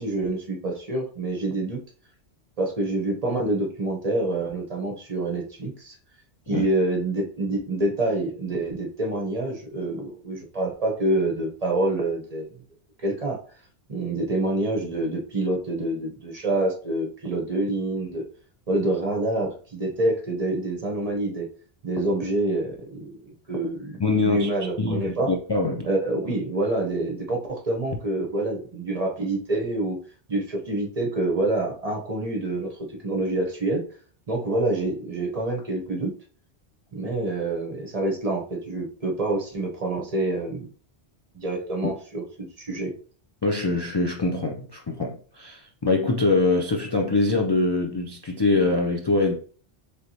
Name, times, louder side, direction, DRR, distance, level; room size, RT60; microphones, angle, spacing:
voice 1, 0.0-1.8 2.6-6.0 6.5-12.5 13.0-13.4 13.9-18.2 18.7-21.5 21.8-25.3 25.8-30.0 30.3-33.8 34.3-36.1 36.9-40.7 41.3-42.9, right 2 dB, 40° right, 0.8 m, -27 dB
voice 2, 24.0-24.5 24.8-25.9 43.4-49.4, left 3 dB, 40° left, 0.4 m, -23 dB
4.4 x 3.5 x 2.7 m
omnidirectional pair, 1.1 m